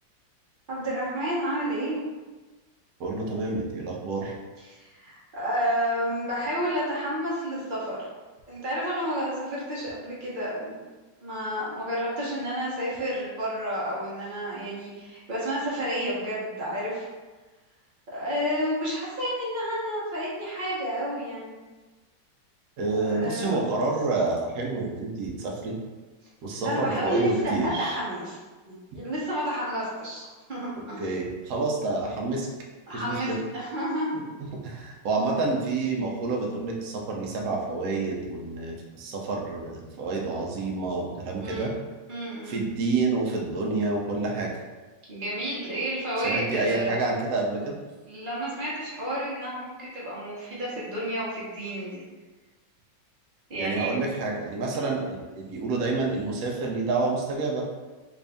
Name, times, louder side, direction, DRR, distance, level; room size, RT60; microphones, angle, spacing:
voice 1, 0.7-2.0 4.6-8.0 8.5-10.8 11.2-17.1 18.1-21.6 22.9-23.7 26.6-28.4 28.7-31.0 32.9-34.2 41.4-41.7 42.1-42.6 45.1-47.0 48.0-52.0 53.5-54.1, equal, 45° right, -7 dB, 0.6 m, -30 dB
voice 2, 3.0-4.3 22.8-25.7 26.4-28.0 31.0-32.5 32.9-33.4 34.6-41.7 42.5-44.5 46.2-47.8 53.6-57.6, right 3 dB, 75° right, -1 dB, 0.8 m, -28 dB
3.5 x 2.6 x 3.4 m, 1.3 s
omnidirectional pair, 2.3 m